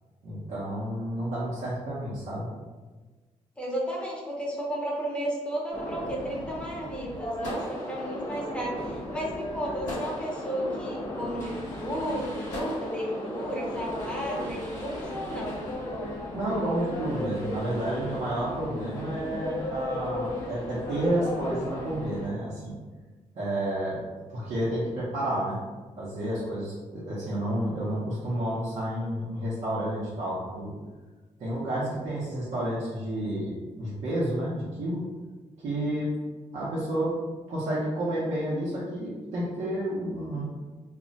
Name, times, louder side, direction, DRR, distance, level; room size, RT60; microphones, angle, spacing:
voice 1, 0.2-2.5 16.3-22.7 23.3-24.0 24.3-25.6 26.0-30.8 31.4-35.0 35.6-36.1 36.5-37.1 37.5-40.4, right 1 dB, 65° right, -9 dB, 0.7 m, -30 dB
voice 2, 3.6-15.6, equal, 10° left, -4 dB, 0.7 m, -33 dB
sound 1, 5.7-22.3, left 1 dB, 30° left, 1.0 m, -36 dB
2.1 x 2.1 x 3.8 m, 1.3 s
cardioid pair, 115°, 13 cm